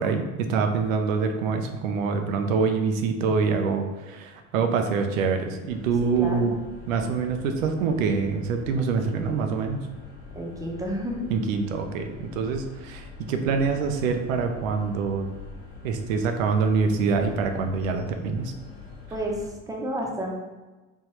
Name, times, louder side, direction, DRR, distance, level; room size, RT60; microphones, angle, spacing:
voice 1, 0.0-6.6 6.9-9.8 11.3-15.3 15.8-18.5, right 5 dB, 80° right, 5 dB, 0.5 m, -25 dB
sound 1, 5.7-19.5, left 4 dB, 35° left, 0.7 m, -44 dB
voice 2, 6.2-6.5 10.3-11.3 19.1-20.4, equal, 10° right, -1 dB, 0.7 m, -31 dB
3.4 x 2.2 x 3.0 m, 1.2 s
hypercardioid pair, 60°, 39 cm